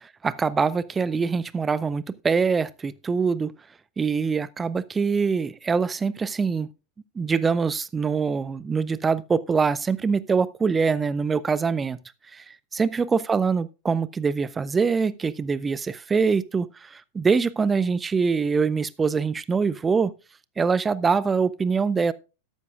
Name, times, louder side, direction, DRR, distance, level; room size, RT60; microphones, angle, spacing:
voice 1, 0.0-3.5 4.0-6.7 7.2-12.0 12.3-12.4 12.7-20.1 20.6-22.1, right 5 dB, 15° right, 0.5 m, -24 dB
13.0 x 11.5 x 2.4 m
figure-of-eight pair, 90°, 0 cm